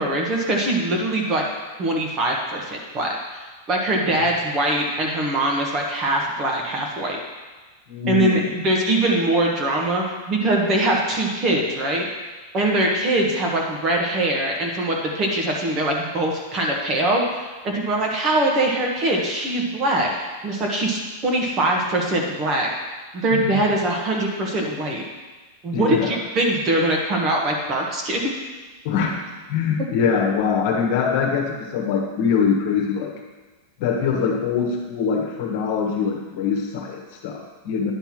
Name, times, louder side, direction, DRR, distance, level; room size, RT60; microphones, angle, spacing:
voice 1, 0.0-1.4 1.8-7.2 8.1-12.0 12.5-22.7 23.1-25.0 25.6-28.2, right 1 dB, 25° right, 0 dB, 1.3 m, -22 dB
voice 2, 7.9-8.5 23.3-23.6 25.7-26.2 28.8-29.2 29.5-33.1 33.8-37.9, left 6 dB, 50° left, 1 dB, 1.4 m, -23 dB
10.0 x 3.4 x 6.0 m, 1.3 s
supercardioid pair, 165°, 0 cm